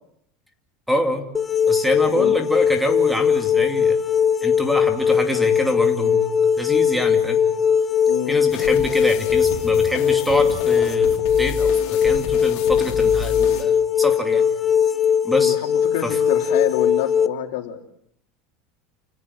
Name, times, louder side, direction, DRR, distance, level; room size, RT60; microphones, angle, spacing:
voice 1, 0.9-1.3 1.7-4.0 4.4-6.2 6.6-7.4 8.3-14.4 15.2-15.6 16.0-16.2, equal, ahead, 6 dB, 2.5 m, -26 dB
sound 1, 1.3-17.3, left 7 dB, 15° left, 0.9 m, -20 dB
sound 2, 8.5-13.6, left 8 dB, 60° left, 3.9 m, -32 dB
voice 2, 15.4-17.8, left 13 dB, 75° left, 4 dB, 3.6 m, -27 dB
29.5 x 17.5 x 8.1 m, 0.70 s
supercardioid pair, 150°, 0 cm